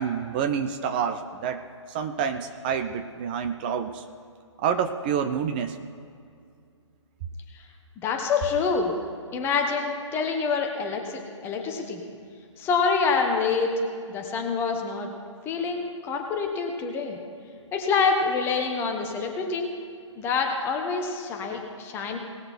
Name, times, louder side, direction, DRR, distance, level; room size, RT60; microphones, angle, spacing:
voice 1, 0.0-4.0 4.6-5.8, right 7 dB, 20° right, 7 dB, 0.4 m, -28 dB
voice 2, 8.0-9.0 9.3-12.0 12.6-13.7 14.1-15.1 15.4-17.2 17.7-19.7 20.2-22.2, left 5 dB, 15° left, 3 dB, 1.2 m, -26 dB
19.0 x 6.6 x 4.5 m, 2.3 s
figure-of-eight pair, 140°, 16 cm